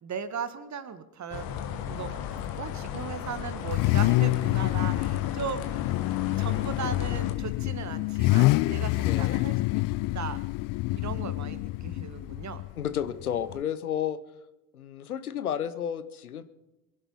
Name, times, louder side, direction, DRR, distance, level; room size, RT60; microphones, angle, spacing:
voice 1, 0.0-1.5 1.9-5.8 6.4-10.4 10.9-12.6, right 7 dB, 40° right, 12 dB, 1.6 m, -38 dB
sound 1, 1.3-7.3, left 8 dB, 70° left, 1.5 m, -36 dB
Car / Idling / Accelerating revving vroom, 1.5-13.6, left 20 dB, 50° left, 0.4 m, -28 dB
voice 2, 9.0-9.4 12.8-14.2 14.7-16.4, left 9 dB, 90° left, 13 dB, 0.8 m, -32 dB
22.5 x 11.0 x 5.4 m, 0.95 s
figure-of-eight pair, 50°, 43 cm